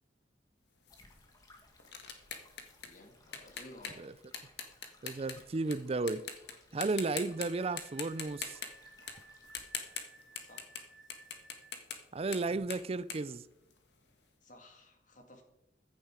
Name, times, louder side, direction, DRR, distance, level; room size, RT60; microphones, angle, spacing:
sound 1, 0.9-5.7 6.1-6.5 6.8-7.5 7.8-10.8 11.1-14.1, left 6 dB, 70° left, 1.8 m, -43 dB
Stream, 0.9-9.7, left 2 dB, 20° left, 2.0 m, -63 dB
voice 1, 2.8-4.0 10.3-10.7 14.4-15.4, left 1 dB, 45° left, 2.3 m, -55 dB
voice 2, 5.0-6.2 6.7-8.6 12.1-13.4, right 3 dB, 35° right, 0.4 m, -34 dB
Wind instrument woodwind instrument, 7.0-11.7, right 2 dB, ahead, 1.1 m, -58 dB
15.0 x 10.5 x 5.0 m
head